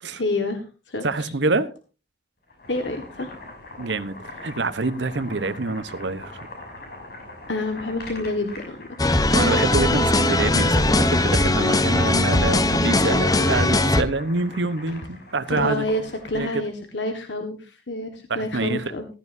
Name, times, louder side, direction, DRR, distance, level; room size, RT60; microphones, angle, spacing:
voice 1, 0.1-1.3 2.7-3.3 7.5-8.9 15.5-19.1, left 2 dB, 80° left, 1.6 m, -28 dB
voice 2, 1.0-1.7 3.8-6.5 9.3-15.9 16.3-16.6 18.3-18.8, right 3 dB, 80° right, 1.0 m, -26 dB
Boiling, 2.4-16.5, left 2 dB, 60° left, 6.1 m, -42 dB
sound 1, 9.0-14.0, left 2 dB, 20° left, 0.8 m, -19 dB
15.5 x 13.0 x 2.7 m
head